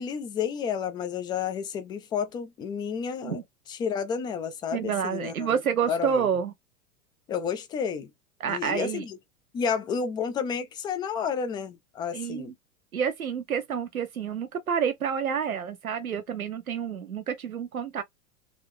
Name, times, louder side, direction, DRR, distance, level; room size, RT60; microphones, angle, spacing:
voice 1, 0.0-3.4 3.7-6.3 7.3-8.1 8.4-9.2 9.5-12.5, left 6 dB, 10° left, 0.3 m, -31 dB
voice 2, 4.7-6.5 8.4-9.0 12.1-12.5 12.9-18.0, right 7 dB, 80° right, 0.8 m, -29 dB
3.7 x 3.0 x 3.5 m
figure-of-eight pair, 95°, 41 cm